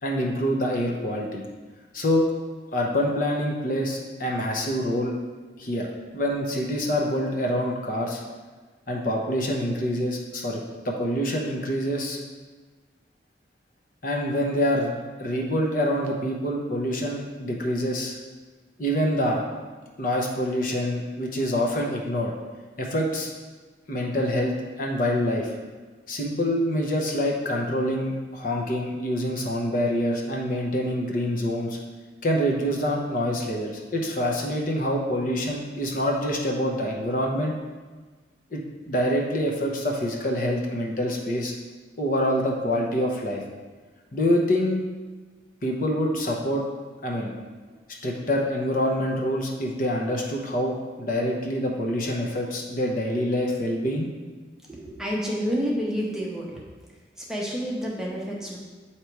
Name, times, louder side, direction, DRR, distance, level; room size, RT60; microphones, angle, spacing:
voice 1, 0.0-1.4 1.9-2.3 2.7-5.1 5.6-5.9 6.1-8.2 8.9-12.2 14.0-14.9 15.2-18.2 18.8-19.5 20.0-22.3 22.8-23.3 23.9-25.6 26.1-31.8 32.2-37.5 38.5-38.6 38.9-41.5 42.0-43.4 44.1-44.8 45.6-46.6 47.0-47.3 48.0-54.1, equal, 50° left, 0 dB, 0.8 m, -26 dB
voice 2, 54.7-56.6 57.3-58.6, equal, 5° right, -4 dB, 0.8 m, -29 dB
7.9 x 2.9 x 4.6 m, 1.3 s
head